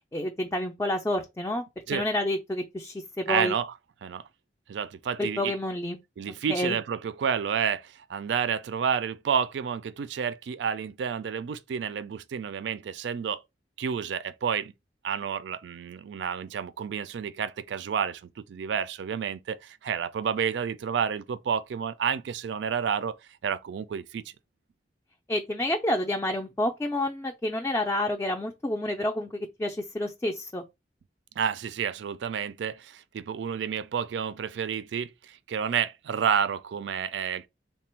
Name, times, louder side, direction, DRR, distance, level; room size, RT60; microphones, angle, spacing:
voice 1, 0.1-1.6 1.9-3.5 5.2-6.0 6.5-6.8 25.3-30.6, left 1 dB, 15° left, 0.4 m, -29 dB
voice 2, 3.3-3.7 4.0-4.3 4.7-5.5 6.2-13.4 13.8-14.7 15.0-23.2 23.4-24.2 31.4-37.5, right 7 dB, 75° right, 0.3 m, -30 dB
3.3 x 2.2 x 4.3 m
head